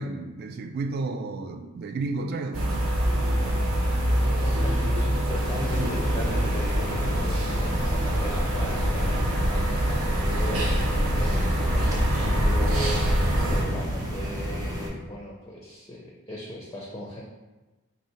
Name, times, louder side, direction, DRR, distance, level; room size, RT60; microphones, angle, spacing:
voice 1, 0.0-2.9 13.7-14.1, right 3 dB, 45° right, 6 dB, 0.3 m, -32 dB
sound 1, 2.5-13.6, equal, 80° right, 0.8 m, -25 dB
voice 2, 4.2-17.2, equal, 15° left, -3 dB, 0.5 m, -37 dB
sound 2, 5.4-14.9, equal, 15° right, 0.7 m, -32 dB
3.0 x 2.7 x 4.4 m, 1.2 s
head